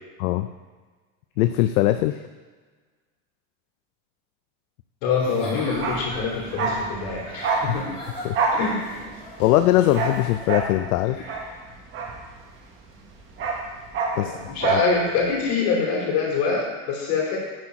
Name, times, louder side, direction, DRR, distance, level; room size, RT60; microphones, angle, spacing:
voice 1, 1.4-2.2 7.7-7.8 8.2-8.4 9.4-11.2 14.2-14.8, left 14 dB, 75° left, 9 dB, 0.5 m, -21 dB
voice 2, 5.0-7.9 8.5-9.0 11.1-11.4 14.1-17.4, left 4 dB, 55° left, -2 dB, 2.8 m, -25 dB
Giggle / Chuckle chortle, 5.1-10.6, equal, 10° left, 1.5 m, -41 dB
Bark, 5.7-12.7 13.0-14.9 15.2-15.3, right 4 dB, 25° right, 1.1 m, -27 dB
10.5 x 4.2 x 4.8 m, 1.4 s
supercardioid pair, 165°, 44 cm